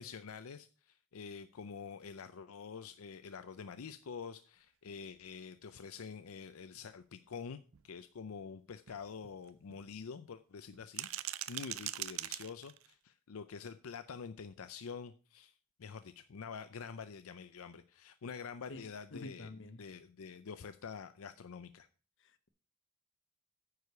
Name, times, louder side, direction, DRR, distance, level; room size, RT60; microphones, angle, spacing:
voice 1, 0.0-7.6 7.8-11.1 11.5-15.5 15.8-19.5 19.8-21.9, left 6 dB, 85° left, 0.5 m, -47 dB
sound 1, 5.2-5.3 5.7-5.8 6.2-6.3 6.7-6.9 7.2-7.3 7.7-7.9 8.3-8.4 8.9-9.9 10.7-12.9, right 14 dB, 70° right, 0.5 m, -42 dB
voice 2, 18.7-19.8 22.2-22.5, left 2 dB, 60° left, 1.0 m, -48 dB
9.4 x 4.8 x 6.8 m
head